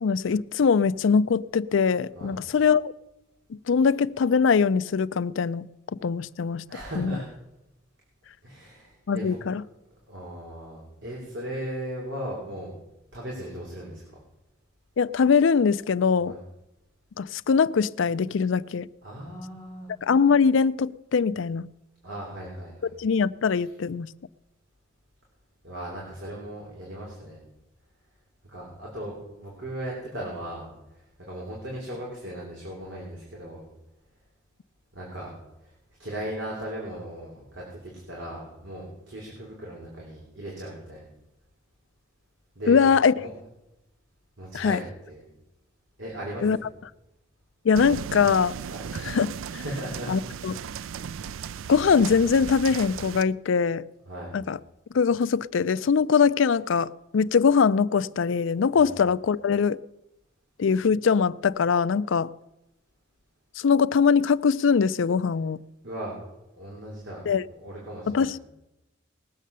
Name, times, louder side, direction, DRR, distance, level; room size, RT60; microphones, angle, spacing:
voice 1, 0.0-2.9 3.5-5.7 5.9-6.6 7.0-7.2 9.1-9.6 15.0-16.4 17.2-18.9 20.0-21.7 23.0-24.1 42.7-43.1 44.5-44.8 46.4-46.6 47.6-48.6 48.9-49.3 49.5-49.6 50.1-50.6 51.7-53.8 54.3-54.6 54.9-59.8 60.6-62.3 63.6-65.6 67.3-67.5 68.1-68.4, left 5 dB, 75° left, 0.4 m, -22 dB
voice 2, 6.7-7.3 8.4-9.4 10.1-12.7 13.1-14.0 16.2-16.4 19.0-19.9 22.0-22.9 25.6-27.4 28.5-30.7 30.9-33.6 34.9-35.3 35.6-35.7 36.0-41.0 42.6-42.8 43.2-43.3 44.4-45.3 46.0-46.6 48.7-48.9 49.5-50.1 54.1-54.3 58.8-59.0 65.8-66.2 66.6-67.3 67.6-68.4, right 1 dB, 70° right, 3.4 m, -37 dB
sound 1, 47.7-53.2, right 7 dB, 85° right, 0.4 m, -36 dB
19.5 x 7.4 x 6.7 m
head